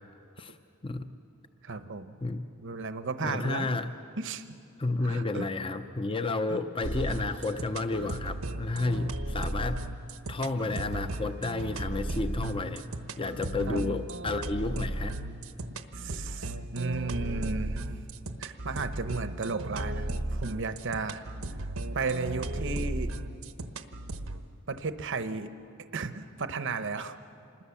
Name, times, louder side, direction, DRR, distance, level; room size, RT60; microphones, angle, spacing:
voice 1, 1.6-2.2 2.6-3.8 4.2-4.4 5.0-5.5 6.5-6.6 13.7-13.8 15.9-17.9 18.4-21.3 21.9-23.1 24.7-25.5 25.9-27.2, right 4 dB, 65° right, 10 dB, 0.9 m, -34 dB
voice 2, 3.2-3.9 4.8-9.8 10.3-12.8 13.2-15.2, left 3 dB, 25° left, 9 dB, 0.6 m, -31 dB
sound 1, 6.8-24.4, right 1 dB, 85° right, 1.2 m, -35 dB
27.0 x 21.0 x 7.1 m, 2.6 s
head